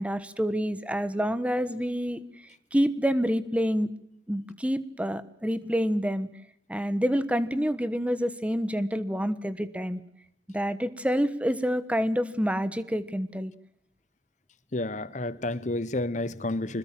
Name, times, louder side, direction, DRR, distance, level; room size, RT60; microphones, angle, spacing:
voice 1, 0.0-2.2 2.7-3.9 4.3-6.3 6.7-10.0 10.5-13.5, equal, 5° right, 1.3 m, -27 dB
voice 2, 14.7-16.8, left 2 dB, 40° left, 1.2 m, -30 dB
25.5 x 21.0 x 7.6 m
head